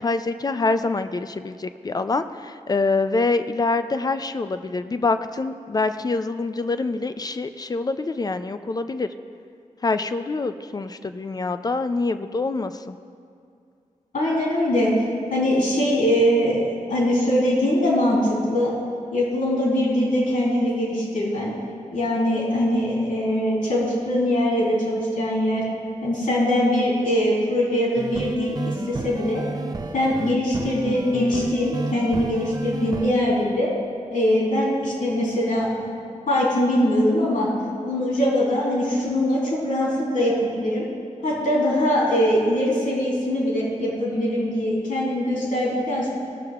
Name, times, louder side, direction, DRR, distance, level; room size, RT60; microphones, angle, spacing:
voice 1, 0.0-9.1 9.8-13.0, left 3 dB, 30° left, 10 dB, 0.4 m, -25 dB
voice 2, 14.1-18.7 19.1-21.5 21.9-25.6 26.0-29.4 29.9-33.7 34.1-35.7 36.3-37.5 37.8-40.9 41.2-46.1, left 1 dB, 85° left, -6 dB, 3.1 m, -22 dB
sound 1, 28.0-33.1, right 3 dB, 30° right, 0.5 m, -32 dB
18.5 x 6.7 x 3.6 m, 2.4 s
wide cardioid pair, 175°, 13 cm